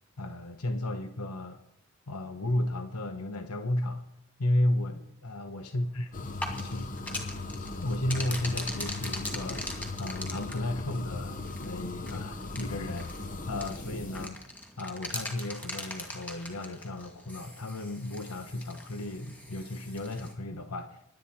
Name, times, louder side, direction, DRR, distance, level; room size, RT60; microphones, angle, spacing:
voice 1, 0.2-1.6 2.1-4.0 4.4-6.1 6.6-6.9 7.6-14.4 14.8-21.1, left 1 dB, 90° left, 7 dB, 1.1 m, -33 dB
sound 1, 6.1-14.3, left 2 dB, 35° left, 0.8 m, -38 dB
sound 2, 6.2-20.3, left 1 dB, 5° left, 2.4 m, -42 dB
25.5 x 11.5 x 4.3 m, 0.81 s
head